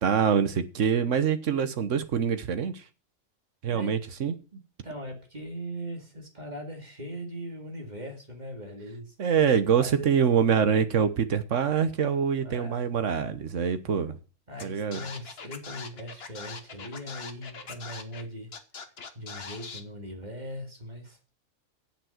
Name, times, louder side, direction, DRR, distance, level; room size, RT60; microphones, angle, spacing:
voice 1, 0.0-2.8 3.6-4.3 9.2-14.2 14.6-15.0, right 7 dB, 65° right, 1.4 m, -25 dB
voice 2, 4.5-9.1 9.8-10.1 12.4-12.8 14.5-18.5 19.1-21.2, equal, 35° right, 2.5 m, -40 dB
Scratching (performance technique), 14.6-14.7 14.9-18.2 18.5-19.8, left 5 dB, 50° left, 1.4 m, -41 dB
8.5 x 7.5 x 7.8 m
omnidirectional pair, 1.4 m